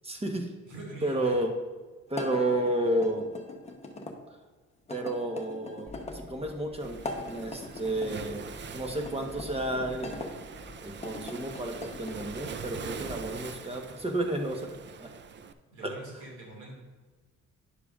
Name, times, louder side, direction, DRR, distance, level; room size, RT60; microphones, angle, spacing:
voice 1, 0.0-0.5 1.0-1.5 2.1-3.2 4.9-10.2 10.8-14.7 15.0-15.1 15.8-15.9, right 1 dB, 20° right, 3 dB, 1.1 m, -31 dB
voice 2, 0.6-1.4 15.7-16.8, right 2 dB, 75° right, -3 dB, 2.2 m, -44 dB
sound 1, 2.1-4.2 4.9-6.2 6.9-8.1 9.0-10.3 10.9-12.3, left 2 dB, 20° left, 0.9 m, -41 dB
sound 2, 5.9-13.3, left 2 dB, 5° left, 1.3 m, -49 dB
Waves surf, 6.8-15.5, right 6 dB, 40° right, 0.5 m, -43 dB
10.0 x 6.7 x 2.4 m, 1.3 s
cardioid pair, 90°, 30 cm